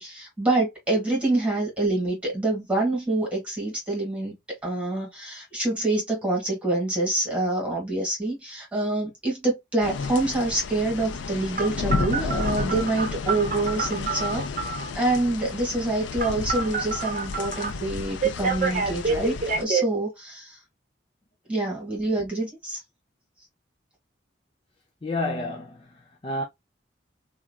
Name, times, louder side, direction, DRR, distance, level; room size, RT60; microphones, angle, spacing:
voice 1, 0.0-20.6 21.5-22.8, right 2 dB, 5° right, 1.5 m, -26 dB
sound 1, 9.8-19.6, left 4 dB, 90° left, 0.4 m, -32 dB
Telephone, 11.6-14.9 16.2-17.7 18.2-19.8, right 4 dB, 45° right, 0.8 m, -28 dB
voice 2, 25.0-26.4, left 2 dB, 30° left, 0.5 m, -30 dB
3.0 x 2.4 x 2.2 m
head